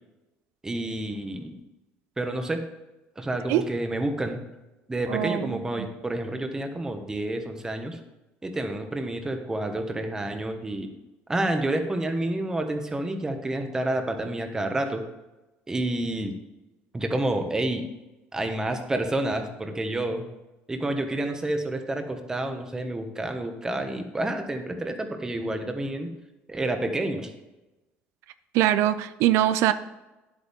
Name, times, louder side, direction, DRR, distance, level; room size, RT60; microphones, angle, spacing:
voice 1, 0.6-1.6 2.2-2.6 3.2-4.4 4.9-8.0 8.4-10.9 11.3-15.0 15.7-16.3 16.9-17.9 18.3-20.3 20.7-26.1 26.5-27.3, right 1 dB, 15° right, 5 dB, 1.2 m, -29 dB
voice 2, 5.1-5.9 28.5-29.7, right 13 dB, 85° right, 12 dB, 0.4 m, -23 dB
10.0 x 8.5 x 3.6 m, 1.0 s
cardioid pair, 135°, 5 cm